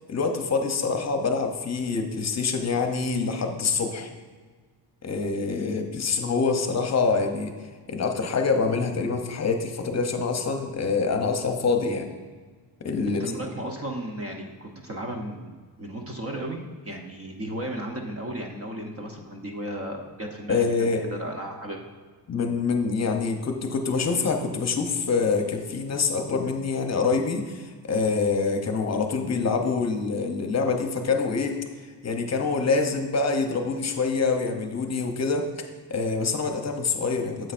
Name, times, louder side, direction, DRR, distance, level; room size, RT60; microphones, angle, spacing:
voice 1, 0.1-4.1 5.0-7.5 7.9-12.1 12.8-13.2 20.5-21.1 22.3-31.6 32.0-35.5 35.9-37.5, left 4 dB, 40° left, 5 dB, 0.8 m, -25 dB
voice 2, 13.1-21.8, right 1 dB, 35° right, 2 dB, 0.8 m, -35 dB
9.9 x 7.7 x 2.5 m, 1.5 s
wide cardioid pair, 145°, 43 cm